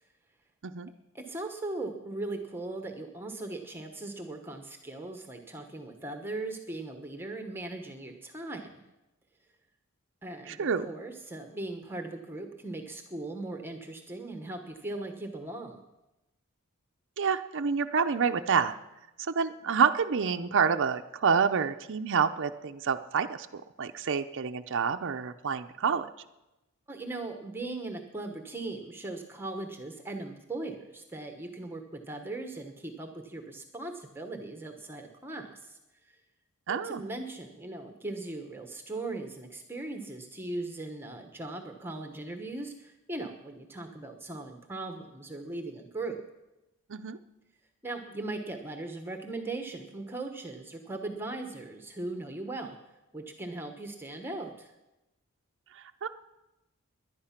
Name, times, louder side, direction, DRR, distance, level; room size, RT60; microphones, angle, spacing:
voice 1, 1.1-8.8 10.2-15.8 26.9-35.8 36.0-36.2 36.7-46.2 47.8-52.8 53.1-54.7, right 2 dB, 10° right, 5 dB, 1.1 m, -39 dB
voice 2, 10.5-10.9 17.2-18.7 19.2-26.1 36.7-37.0 46.9-47.2 55.7-56.1, right 6 dB, 60° right, 7 dB, 0.6 m, -28 dB
18.5 x 11.0 x 5.9 m, 0.98 s
head